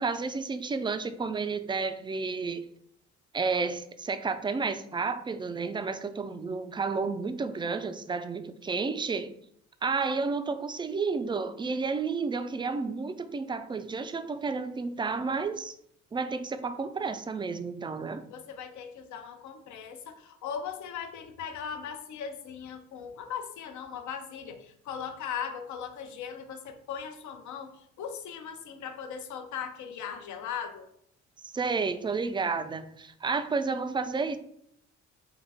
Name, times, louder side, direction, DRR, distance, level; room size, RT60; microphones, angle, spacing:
voice 1, 0.0-2.7 3.3-9.3 9.8-15.7 16.1-18.2 31.4-34.4, right 4 dB, 15° right, 0.3 m, -31 dB
voice 2, 18.3-30.9, left 7 dB, 70° left, 0.7 m, -39 dB
3.9 x 3.1 x 3.4 m
cardioid pair, 90°, 30 cm